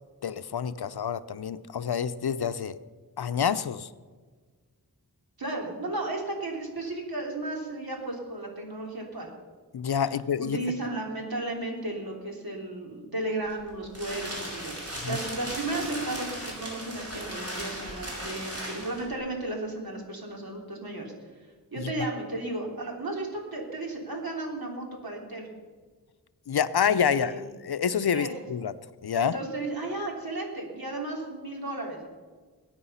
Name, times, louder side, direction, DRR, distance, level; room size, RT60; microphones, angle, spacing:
voice 1, 0.2-2.8 3.2-3.9 9.7-10.6 15.0-15.2 21.8-21.9 26.5-27.3 27.7-28.7 29.0-29.4, left 7 dB, 75° left, 13 dB, 0.7 m, -27 dB
voice 2, 5.4-9.3 10.4-14.7 15.1-21.5 21.7-25.5 27.1-27.4 28.1-28.3 29.2-32.1, right 2 dB, 65° right, -1 dB, 3.6 m, -34 dB
sound 1, 13.4-19.1, equal, 40° right, 5.6 m, -37 dB
20.5 x 8.9 x 5.6 m, 1.5 s
wide cardioid pair, 70°, 39 cm